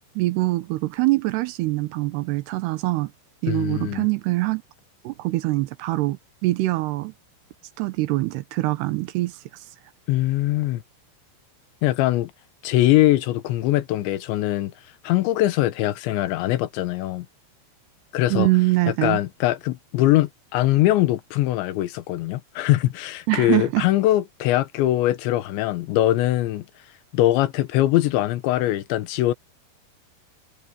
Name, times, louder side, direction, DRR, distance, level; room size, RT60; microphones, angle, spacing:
voice 1, 0.2-3.1 3.4-4.6 5.0-7.1 7.8-9.4 18.3-19.2 23.3-23.9, right 20 dB, 75° right, 2.8 m, -23 dB
voice 2, 3.5-4.1 10.1-10.8 11.8-12.3 12.6-14.7 15.0-17.3 18.1-18.5 19.0-26.7 27.1-29.3, left 15 dB, 90° left, 3.4 m, -22 dB
omnidirectional pair, 5.1 m